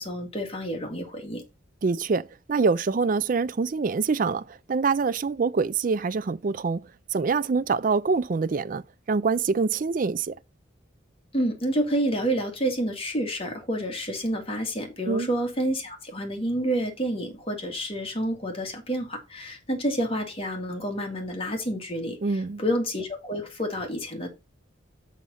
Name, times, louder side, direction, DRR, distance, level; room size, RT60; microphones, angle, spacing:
voice 1, 0.0-1.4 11.3-22.2 22.6-24.3, equal, 30° left, 2.1 m, -29 dB
voice 2, 1.8-6.8 7.1-10.3 15.1-15.3 22.2-22.6, right 4 dB, 40° right, 0.4 m, -25 dB
6.3 x 5.3 x 5.6 m
head